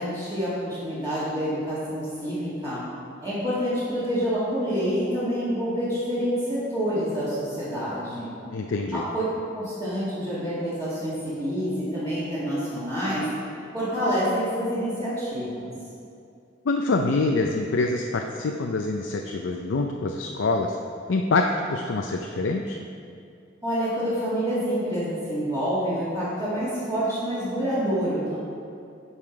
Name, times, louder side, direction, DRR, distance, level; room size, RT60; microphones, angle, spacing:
voice 1, 0.0-2.8 3.2-8.3 8.9-9.2 9.5-13.2 13.7-15.7 23.6-28.3, equal, 20° right, -13 dB, 2.0 m, -27 dB
voice 2, 8.5-9.0 16.7-20.8 21.1-22.8, left 3 dB, 85° left, 2 dB, 0.5 m, -25 dB
9.8 x 5.6 x 4.5 m, 2.5 s
head